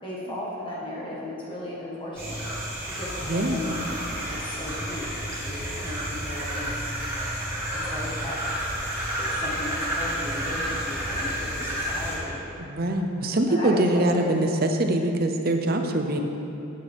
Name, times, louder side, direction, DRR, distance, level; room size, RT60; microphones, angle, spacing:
voice 1, 0.0-2.4 2.9-6.8 7.7-8.4 9.2-12.4 13.5-14.5, left 1 dB, 25° left, -6 dB, 1.5 m, -36 dB
sound 1, 2.1-12.2, equal, 10° right, 2.3 m, -30 dB
voice 2, 3.3-3.6 12.7-16.2, right 1 dB, 45° right, 5 dB, 0.7 m, -23 dB
12.0 x 9.0 x 3.6 m, 2.9 s
head